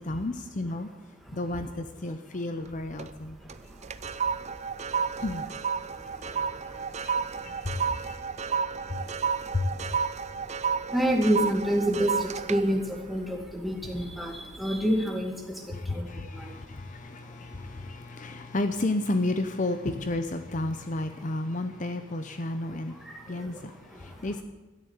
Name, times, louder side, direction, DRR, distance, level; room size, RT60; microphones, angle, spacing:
voice 1, 0.0-0.9 1.3-3.4 5.2-5.5 7.0-9.1 9.4-10.0 15.7-24.4, left 2 dB, 40° left, 8 dB, 0.7 m, -32 dB
sound 1, 2.7-3.2 3.5-14.1 14.5-14.8, right 6 dB, 35° right, 0.5 m, -32 dB
voice 2, 3.4-5.2 5.8-9.9 10.4-18.6 22.9-23.6 23.9-24.3, equal, ahead, 1 dB, 2.1 m, -32 dB
13.0 x 10.5 x 8.2 m, 1.2 s
head